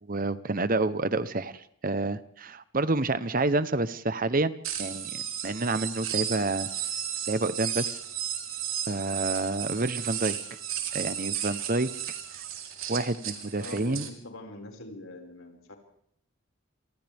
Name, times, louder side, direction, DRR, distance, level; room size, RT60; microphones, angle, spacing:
voice 1, 0.0-6.7 7.3-8.0 8.9-10.4 10.9-11.9 12.9-14.1, right 2 dB, 40° right, 14 dB, 0.9 m, -29 dB
sound 1, 4.6-14.1, right 10 dB, 85° right, 3.8 m, -34 dB
voice 2, 13.6-15.8, left 2 dB, 85° left, 2 dB, 5.7 m, -43 dB
28.0 x 25.5 x 3.6 m, 0.68 s
head